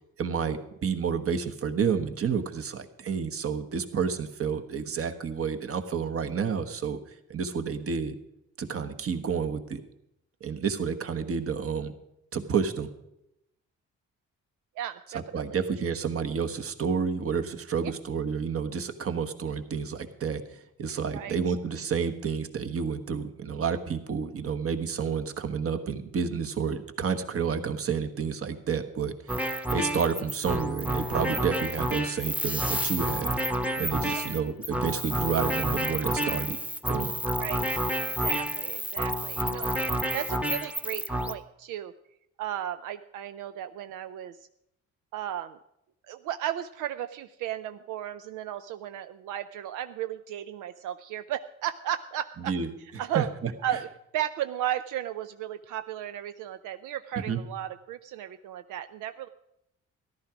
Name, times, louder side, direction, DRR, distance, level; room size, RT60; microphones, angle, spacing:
voice 1, 0.2-7.0 7.3-8.1 8.6-9.8 10.4-11.9 12.3-12.9 15.1-29.4 29.7-33.3 33.8-36.6 36.8-37.1 52.4-52.7 53.1-53.5 57.3-57.4, right 6 dB, 50° right, 8 dB, 1.3 m, -30 dB
voice 2, 14.8-15.6 21.1-21.4 34.1-34.3 37.4-37.7 38.2-41.9 42.4-44.4 45.1-45.6 46.1-52.5 53.0-53.3 53.6-53.9 54.1-59.3, right 11 dB, 85° right, 10 dB, 0.5 m, -35 dB
sound 1, 29.3-41.3, equal, 5° right, 0.9 m, -29 dB
14.0 x 11.5 x 4.9 m, 0.82 s
cardioid pair, 90°, 30 cm